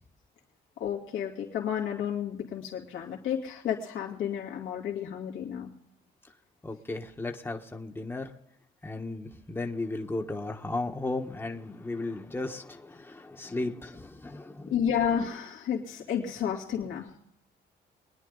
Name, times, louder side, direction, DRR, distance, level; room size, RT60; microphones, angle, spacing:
voice 1, 0.8-5.7 14.7-17.1, left 8 dB, 90° left, -3 dB, 2.4 m, -31 dB
voice 2, 6.6-8.3 8.8-14.7, left 2 dB, 10° left, 3 dB, 1.1 m, -35 dB
23.0 x 10.0 x 3.9 m, 0.77 s
cardioid pair, 90°, 20 cm